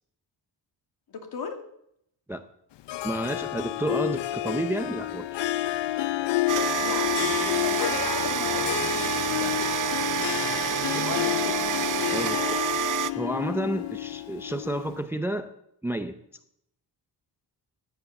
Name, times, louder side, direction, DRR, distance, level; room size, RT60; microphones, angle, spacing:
voice 1, 1.1-1.6 6.8-8.8 11.0-11.6, left 5 dB, 55° left, 5 dB, 2.5 m, -36 dB
Harp, 2.9-15.1, left 16 dB, 70° left, 0.6 m, -29 dB
voice 2, 3.0-5.3 9.4-9.6 10.9-11.0 12.1-12.6 13.1-15.5 15.8-16.2, right 1 dB, 5° right, 9 dB, 0.5 m, -31 dB
sound 1, 6.5-13.1, right 9 dB, 45° right, 0.7 m, -28 dB
15.5 x 10.5 x 7.0 m, 0.74 s
wide cardioid pair, 180°, 44 cm